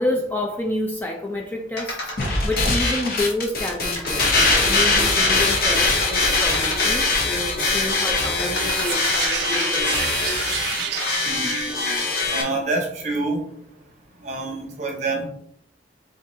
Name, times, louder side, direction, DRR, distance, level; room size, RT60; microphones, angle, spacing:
voice 1, 0.0-10.4, left 1 dB, 10° left, 0 dB, 0.4 m, -29 dB
sound 1, 1.8-2.8 3.9-7.1 7.6-10.1 10.7-11.2, left 1 dB, 65° left, 1.3 m, -32 dB
sound 2, 2.2-12.4, left 3 dB, 50° left, 0.8 m, -22 dB
sound 3, 8.6-12.2, right 8 dB, 60° right, 0.4 m, -30 dB
voice 2, 12.3-13.4 14.2-15.3, right 2 dB, 40° right, 0 dB, 1.0 m, -26 dB
3.9 x 3.7 x 2.7 m, 0.68 s
head